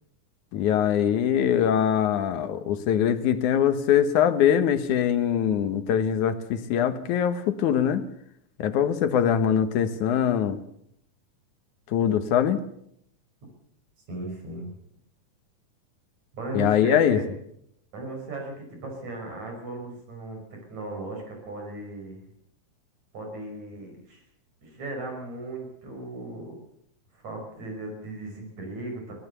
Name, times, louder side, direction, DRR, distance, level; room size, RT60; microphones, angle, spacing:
voice 1, 0.5-8.0 8.6-10.6 11.9-12.6 16.5-17.2, left 9 dB, 75° left, 10 dB, 2.6 m, -22 dB
voice 2, 14.1-14.7 16.3-17.3 17.9-22.2 23.1-24.2 24.6-26.6 27.1-29.1, right 2 dB, 65° right, 2 dB, 7.0 m, -36 dB
22.0 x 17.5 x 6.9 m, 0.72 s
omnidirectional pair, 3.5 m